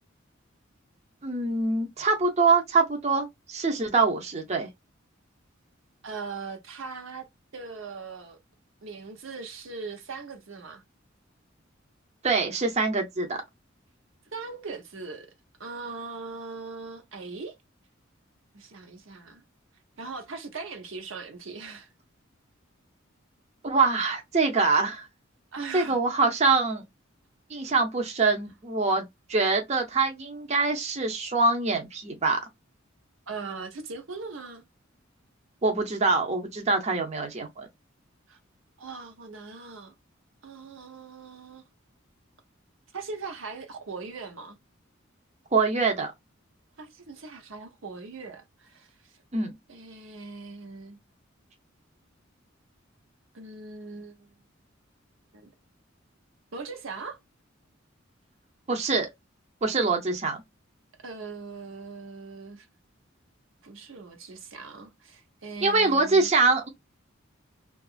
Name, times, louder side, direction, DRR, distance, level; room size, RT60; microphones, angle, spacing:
voice 1, 1.2-4.7 12.2-13.4 23.6-25.1 25.7-26.8 27.5-32.4 35.6-37.7 45.5-46.1 49.3-49.6 58.7-59.1 59.6-60.4 65.6-66.7, right 3 dB, 35° right, 0.6 m, -24 dB
voice 2, 6.0-7.3 7.5-8.4 8.8-10.8 14.3-15.3 15.6-17.5 18.5-19.4 20.0-21.9 25.5-26.0 33.3-34.6 38.3-38.4 38.8-39.9 40.4-41.6 42.9-44.6 46.8-49.1 49.7-51.0 53.3-54.3 55.3-55.5 56.5-57.2 61.0-62.7 63.6-66.3, right 4 dB, 75° right, 0.8 m, -40 dB
2.9 x 2.4 x 2.3 m
head